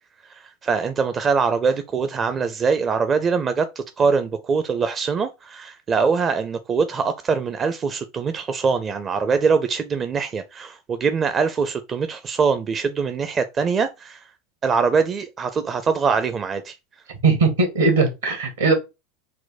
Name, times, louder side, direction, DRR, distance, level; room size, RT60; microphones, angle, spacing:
voice 1, 0.4-14.2 14.6-16.7, right 5 dB, 30° right, 0.5 m, -23 dB
voice 2, 17.2-18.7, right 3 dB, 75° right, 1.5 m, -19 dB
4.3 x 2.1 x 4.0 m
figure-of-eight pair, 80°, 0 cm